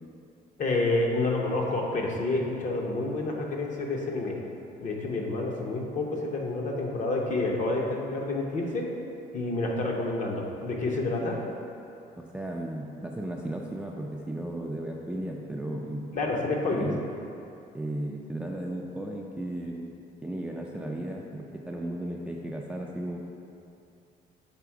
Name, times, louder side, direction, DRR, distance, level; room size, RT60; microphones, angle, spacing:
voice 1, 0.6-4.4 4.8-8.9 9.3-11.4 16.1-16.9, left 2 dB, 50° left, 0 dB, 0.9 m, -29 dB
voice 2, 12.2-16.1 16.7-17.0 17.7-20.0 20.2-23.2, right 1 dB, 5° right, -1 dB, 0.3 m, -35 dB
6.0 x 3.5 x 4.7 m, 2.6 s
cardioid pair, 110°, 17 cm